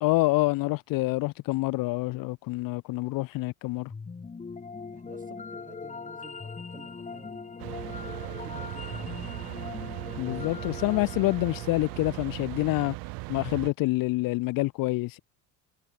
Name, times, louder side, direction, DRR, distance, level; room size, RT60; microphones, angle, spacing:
voice 1, 0.0-3.9 10.2-12.9 13.3-15.2, left 21 dB, 65° left, 1.0 m, -27 dB
sound 1, 3.9-13.0, left 4 dB, 20° left, 2.8 m, -41 dB
voice 2, 4.9-7.6 8.2-9.7, right 5 dB, 20° right, 4.1 m, -53 dB
sound 2, 7.6-13.7, right 25 dB, 70° right, 0.8 m, -38 dB
cardioid pair, 115°, 37 cm